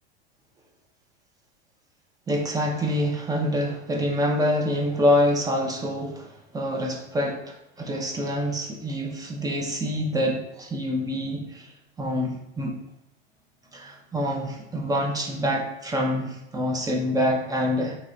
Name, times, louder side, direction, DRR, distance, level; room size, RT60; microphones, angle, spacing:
voice 1, 2.3-12.8 13.7-18.0, equal, 10° right, 0 dB, 0.5 m, -26 dB
3.1 x 3.0 x 3.8 m, 0.82 s
supercardioid pair, 120°, 30 cm